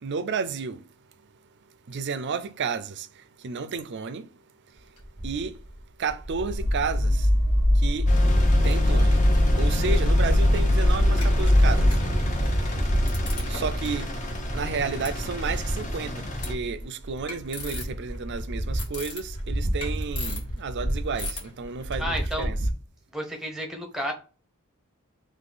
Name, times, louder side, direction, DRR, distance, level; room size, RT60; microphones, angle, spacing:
voice 1, 0.0-0.8 1.9-3.1 3.4-4.2 5.2-5.5 6.0-7.3 7.8-8.1 8.6-9.2 9.6-11.9 13.5-14.1 14.5-16.1 16.5-22.6, right 5 dB, 50° right, 0.5 m, -31 dB
sound 1, 5.0-5.8 6.1-7.5 7.8-22.7, equal, 85° left, 1.8 m, -31 dB
sound 2, 6.5-11.9, left 1 dB, 65° left, 0.8 m, -20 dB
Engine, 8.1-16.5, left 1 dB, 35° left, 0.9 m, -30 dB
voice 2, 22.0-22.5 23.1-24.1, equal, ahead, 0.9 m, -31 dB
3.8 x 3.2 x 3.8 m
head